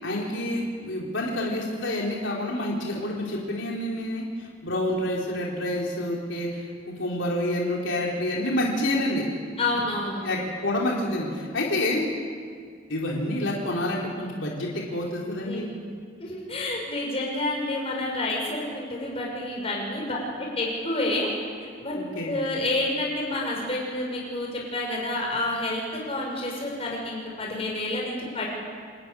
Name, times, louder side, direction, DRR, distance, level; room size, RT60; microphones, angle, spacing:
voice 1, 0.0-9.2 10.2-12.1 12.9-15.7 21.9-22.3, left 1 dB, 85° left, -3 dB, 3.7 m, -28 dB
voice 2, 9.6-10.2 15.4-15.7 16.2-21.3 21.6-21.9 22.2-28.5, left 2 dB, 30° left, -2 dB, 6.1 m, -29 dB
27.5 x 11.0 x 9.8 m, 2.1 s
head